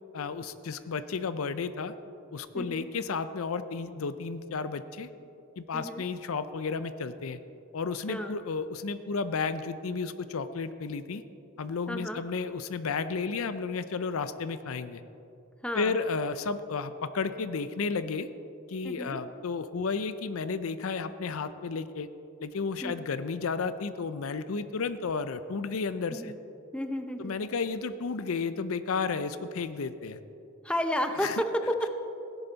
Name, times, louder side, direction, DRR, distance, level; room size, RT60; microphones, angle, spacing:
voice 1, 0.1-1.9 2.3-5.1 5.6-7.4 7.7-11.2 11.6-15.0 15.7-18.3 18.7-22.1 22.4-26.3 27.2-30.2 31.2-31.4, left 4 dB, 75° left, 12 dB, 0.5 m, -32 dB
voice 2, 2.5-2.9 5.7-6.0 8.1-8.4 11.9-12.2 15.6-16.0 18.8-19.2 22.8-22.9 26.1-26.4 26.7-27.3 30.6-31.9, equal, 5° left, 6 dB, 0.6 m, -32 dB
16.5 x 11.0 x 4.0 m, 2.8 s
head